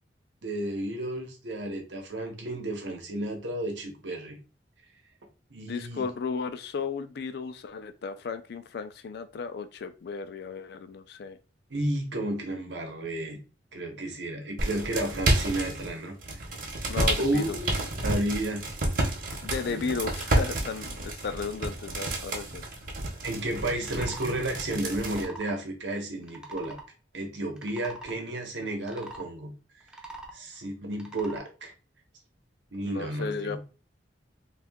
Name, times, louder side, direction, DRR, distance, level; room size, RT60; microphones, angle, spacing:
voice 1, 0.4-4.4 5.5-6.0 11.7-13.4 13.7-16.4 17.2-17.7 18.0-18.6 19.7-20.0 23.2-26.8 27.1-29.5 30.3-31.7 32.7-33.6, right 1 dB, 90° right, 2 dB, 0.9 m, -32 dB
voice 2, 5.7-11.4 16.9-17.6 19.4-22.6 32.8-33.6, left 5 dB, 65° left, 11 dB, 0.4 m, -34 dB
sound 1, 14.6-15.9 16.2-25.3, right 1 dB, 50° right, 0.8 m, -30 dB
sound 2, 23.8-24.3 24.9-25.6 26.2-26.9 27.5-28.2 28.8-29.2 29.8-30.4 30.9-31.4, right 2 dB, 5° right, 0.4 m, -43 dB
2.7 x 2.4 x 3.5 m, 0.33 s
head